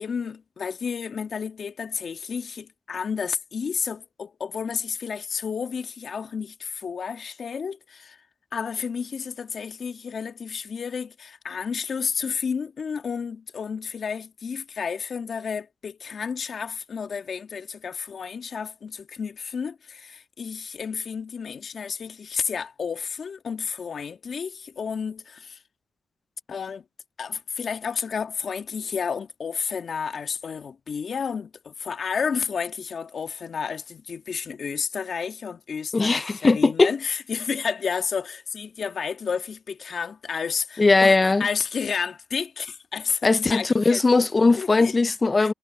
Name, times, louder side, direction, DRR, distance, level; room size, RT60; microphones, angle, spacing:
voice 1, 0.0-8.2 8.5-25.6 26.5-26.8 27.2-44.0 44.6-44.9 45.4-45.5, left 6 dB, 45° left, 1.9 m, -31 dB
voice 2, 35.9-36.9 40.8-41.5 43.2-45.5, left 3 dB, 25° left, 0.5 m, -19 dB
cardioid pair, 90°, 0 cm